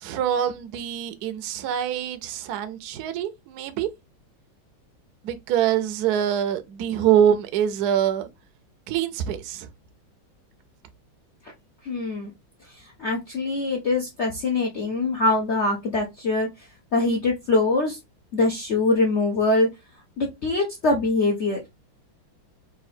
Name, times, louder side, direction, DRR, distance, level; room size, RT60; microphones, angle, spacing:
voice 1, 0.0-3.9 5.2-8.3 8.9-9.7, right 9 dB, 65° right, 1.0 m, -24 dB
voice 2, 11.8-12.3 13.0-16.7 16.9-18.0 18.3-19.7 20.2-21.6, left 2 dB, 50° left, 0.8 m, -23 dB
3.8 x 2.6 x 4.2 m
omnidirectional pair, 2.2 m